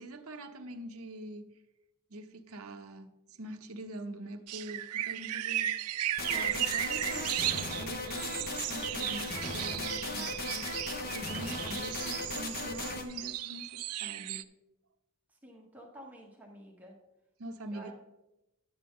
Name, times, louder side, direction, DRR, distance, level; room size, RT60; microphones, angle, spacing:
voice 1, 0.0-1.6 2.1-14.5 17.4-17.9, right 1 dB, 70° right, 0.9 m, -45 dB
sound 1, 4.5-14.4, right 13 dB, 90° right, 0.5 m, -35 dB
sound 2, 6.1-13.0, left 3 dB, 45° left, 1.0 m, -37 dB
voice 2, 15.4-17.0 17.7-17.9, right 1 dB, 5° right, 1.2 m, -50 dB
10.5 x 7.7 x 3.7 m
head